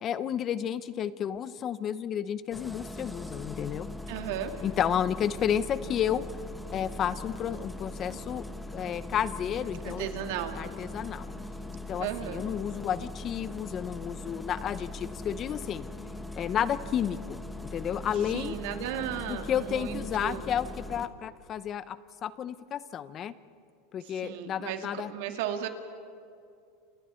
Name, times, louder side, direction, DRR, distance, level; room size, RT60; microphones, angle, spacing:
voice 1, 0.0-3.9 4.6-6.2 6.7-8.4 8.7-10.1 10.6-11.3 11.9-15.9 16.3-18.5 19.2-23.3 23.9-25.1, left 9 dB, 35° left, 15 dB, 0.8 m, -31 dB
Engine starting, 2.5-21.1, left 2 dB, 5° left, 1.3 m, -40 dB
voice 2, 4.1-4.5 9.8-10.6 12.0-12.4 18.3-20.4 24.0-25.7, right 10 dB, 70° right, 5 dB, 2.3 m, -35 dB
29.0 x 28.5 x 4.5 m, 2.4 s
supercardioid pair, 135°, 0 cm